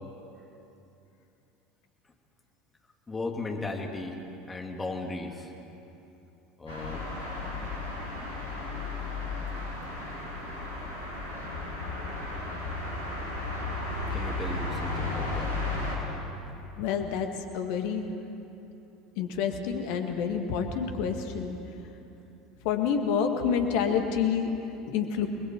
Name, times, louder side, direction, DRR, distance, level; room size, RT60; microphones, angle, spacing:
voice 1, 3.1-5.5 6.6-7.0 14.1-15.5, left 2 dB, 20° left, 2 dB, 2.7 m, -36 dB
sound 1, 6.7-16.0, left 2 dB, 80° left, 5.3 m, -34 dB
voice 2, 16.8-17.3 17.5-18.0 19.2-21.6 22.6-24.5 24.9-25.3, left 7 dB, 60° left, 5 dB, 2.0 m, -28 dB
30.0 x 21.0 x 4.6 m, 2.8 s
figure-of-eight pair, 70°, 0 cm